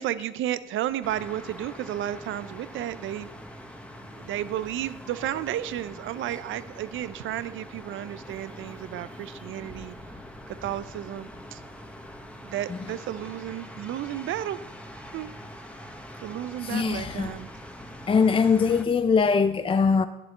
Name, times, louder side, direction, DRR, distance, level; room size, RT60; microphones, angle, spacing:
voice 1, 0.0-3.3 4.2-9.9 10.5-11.6 12.4-14.6 15.1-15.3 16.2-17.5, right 12 dB, 80° right, 0.6 m, -32 dB
sound 1, 1.0-18.9, equal, 5° left, 1.3 m, -43 dB
voice 2, 16.6-17.3 18.1-20.1, left 5 dB, 25° left, 0.5 m, -22 dB
8.4 x 7.6 x 8.0 m
cardioid pair, 90°, 20 cm